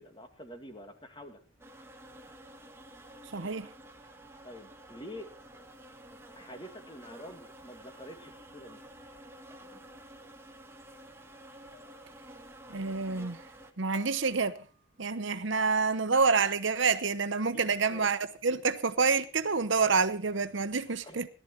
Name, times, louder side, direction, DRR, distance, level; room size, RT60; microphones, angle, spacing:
voice 1, 0.0-1.4 4.4-5.3 6.3-8.8 17.4-18.1 20.9-21.3, equal, 25° left, 2.4 m, -47 dB
sound 1, 1.6-13.7, right 1 dB, 10° right, 1.5 m, -51 dB
voice 2, 3.3-3.7 12.7-13.4 13.8-14.6 15.0-21.3, right 4 dB, 65° right, 0.9 m, -28 dB
sound 2, 11.7-12.1 12.4-12.9 13.3-13.6 13.9-15.3 15.9-16.1 16.5-16.8, left 4 dB, 60° left, 7.1 m, -56 dB
18.0 x 12.0 x 4.3 m
head